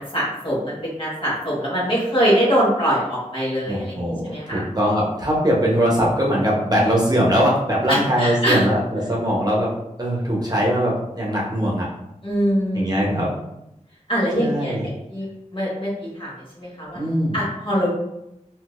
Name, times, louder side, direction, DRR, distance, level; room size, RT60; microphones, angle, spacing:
voice 1, 0.0-4.6 7.9-8.7 12.2-12.9 14.1-17.0 17.3-17.9, equal, 40° left, -6 dB, 1.3 m, -23 dB
voice 2, 3.7-9.7 10.0-11.9 12.7-13.3 14.4-14.9 16.9-17.4, equal, 30° right, -4 dB, 0.9 m, -21 dB
3.6 x 2.7 x 2.4 m, 0.84 s
wide cardioid pair, 65°, 13 cm